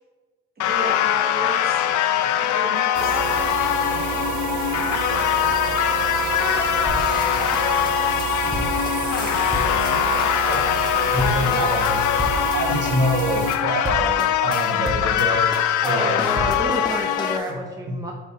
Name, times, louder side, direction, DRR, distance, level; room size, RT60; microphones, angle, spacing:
sound 1, 0.6-17.4, left 11 dB, 75° left, 0.5 m, -22 dB
voice 1, 0.6-1.9 2.4-3.2, right 2 dB, 35° right, 0 dB, 1.7 m, -33 dB
sound 2, 2.9-13.5, right 8 dB, 70° right, 0.7 m, -29 dB
sound 3, 6.9-9.9 10.2-10.6 10.9-11.0 11.2-12.6 12.8-13.2 13.5-13.6 13.8-15.2 15.5-17.5, left 1 dB, 15° left, 1.0 m, -32 dB
voice 2, 10.1-10.6 11.1-12.0 12.5-15.5 15.8-16.4, equal, 50° right, -1 dB, 1.5 m, -25 dB
voice 3, 15.8-18.1, right 1 dB, 10° right, 0 dB, 0.7 m, -29 dB
5.2 x 4.1 x 5.5 m, 1.3 s
cardioid pair, 90°, 30 cm